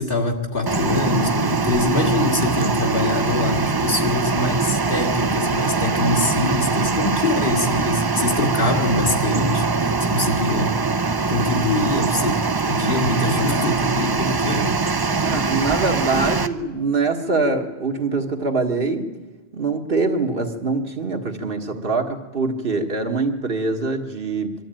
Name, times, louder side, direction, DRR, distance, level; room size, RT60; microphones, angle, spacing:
voice 1, 0.0-15.2, left 2 dB, 60° left, 3 dB, 2.1 m, -24 dB
sound 1, 0.7-16.5, right 4 dB, 30° right, 0.5 m, -22 dB
voice 2, 15.1-19.1 19.5-24.5, right 3 dB, 65° right, 3 dB, 1.8 m, -24 dB
23.5 x 12.5 x 8.9 m, 1.2 s
omnidirectional pair, 1.0 m